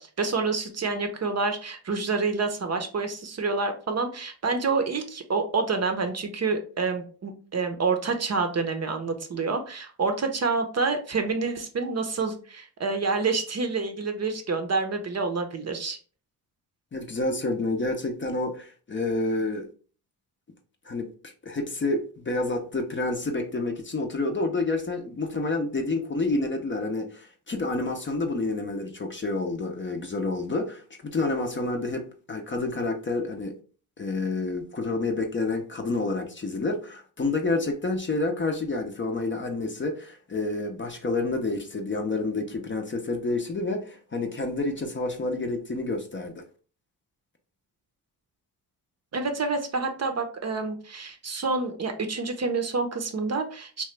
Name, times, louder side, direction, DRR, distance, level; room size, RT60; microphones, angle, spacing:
voice 1, 0.0-16.0 49.1-53.8, right 4 dB, 40° right, 0.6 m, -28 dB
voice 2, 16.9-19.7 20.8-33.5 34.0-46.4, left 2 dB, 30° left, 0.5 m, -29 dB
2.9 x 2.2 x 3.2 m
cardioid pair, 65°, 41 cm